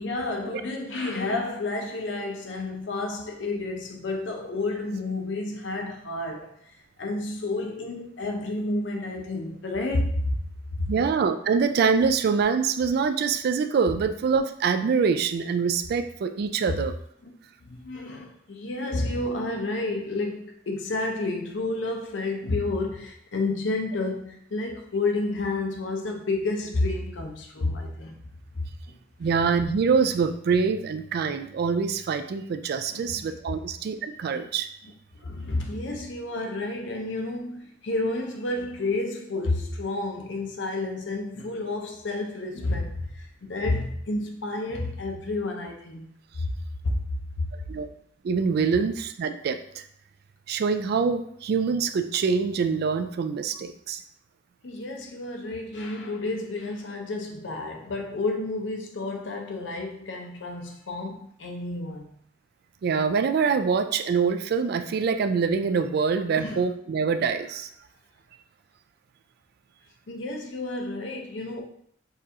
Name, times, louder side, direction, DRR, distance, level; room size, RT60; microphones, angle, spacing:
voice 1, 0.0-10.4 10.8-10.9 16.7-16.8 17.2-17.3 17.6-28.2 32.9-33.2 35.2-46.1 46.4-46.5 46.8-47.5 54.6-62.1 66.4-66.6 70.1-71.6, left 2 dB, 80° left, 0.6 m, -30 dB
voice 2, 10.9-16.9 29.2-34.7 47.7-47.9 48.2-49.9 50.5-54.0 62.8-67.7, right 5 dB, 60° right, 0.3 m, -25 dB
6.4 x 2.4 x 2.8 m
head